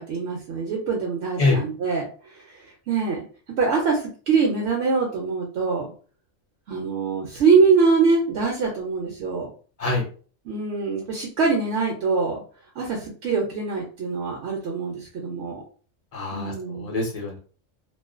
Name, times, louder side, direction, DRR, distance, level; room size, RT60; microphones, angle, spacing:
voice 1, 0.0-5.9 6.7-9.5 10.5-12.4 12.8-15.6 16.3-16.9, right 4 dB, 70° right, -1 dB, 0.8 m, -24 dB
voice 2, 16.1-17.4, left 3 dB, 40° left, 0 dB, 0.6 m, -24 dB
2.4 x 2.2 x 2.4 m, 0.40 s
omnidirectional pair, 1.3 m